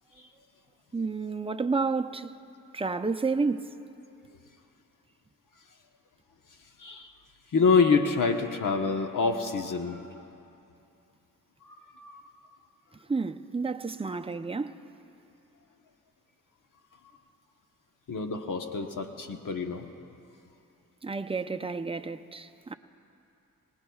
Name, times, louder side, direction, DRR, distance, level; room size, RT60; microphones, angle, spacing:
voice 1, 0.9-2.3 2.7-3.8 13.1-14.8 21.0-22.7, right 4 dB, 15° right, 0.6 m, -30 dB
voice 2, 6.8-7.1 7.5-10.2 11.6-12.2 18.1-19.9, left 4 dB, 60° left, 1.1 m, -27 dB
25.0 x 19.0 x 2.4 m
cardioid pair, 55°, 35 cm